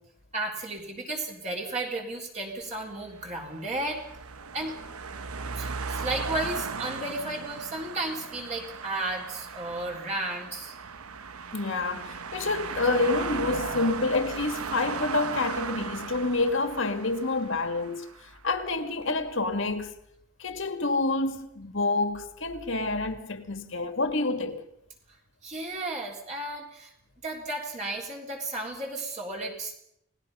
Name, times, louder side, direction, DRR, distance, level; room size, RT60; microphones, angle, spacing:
voice 1, 0.3-4.0 4.5-4.7 5.6-10.8 25.4-26.9 27.2-29.8, right 2 dB, 30° right, 3.9 m, -33 dB
sound 1, 2.9-18.3, right 5 dB, 90° right, 1.1 m, -37 dB
voice 2, 11.5-19.9 20.4-24.6, left 3 dB, 60° left, 2.0 m, -28 dB
29.5 x 19.0 x 5.6 m
head